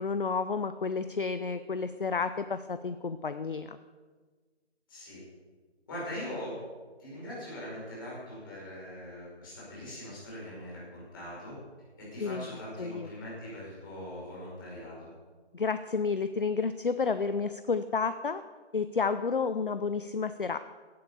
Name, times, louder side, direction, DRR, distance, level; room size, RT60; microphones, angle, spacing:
voice 1, 0.0-3.8 12.2-12.4 12.8-13.1 15.5-18.4 18.7-20.6, left 5 dB, 50° left, 11 dB, 0.6 m, -31 dB
voice 2, 4.9-5.2 5.9-6.6 7.0-11.5 12.0-14.9, left 1 dB, 20° left, -7 dB, 5.5 m, -41 dB
16.5 x 7.7 x 7.0 m, 1.4 s
figure-of-eight pair, 165°, 34 cm